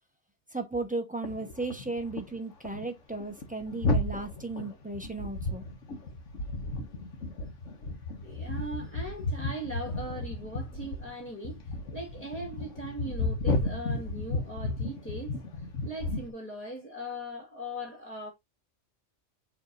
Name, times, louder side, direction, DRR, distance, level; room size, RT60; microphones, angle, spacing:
voice 1, 0.5-5.6, right 3 dB, 5° right, 0.9 m, -35 dB
sound 1, 1.2-2.4 2.6-2.9 3.1-16.3, left 2 dB, 85° left, 1.6 m, -33 dB
voice 2, 8.2-11.6 11.9-18.3, right 1 dB, 10° left, 2.0 m, -39 dB
7.0 x 3.3 x 4.0 m
omnidirectional pair, 1.3 m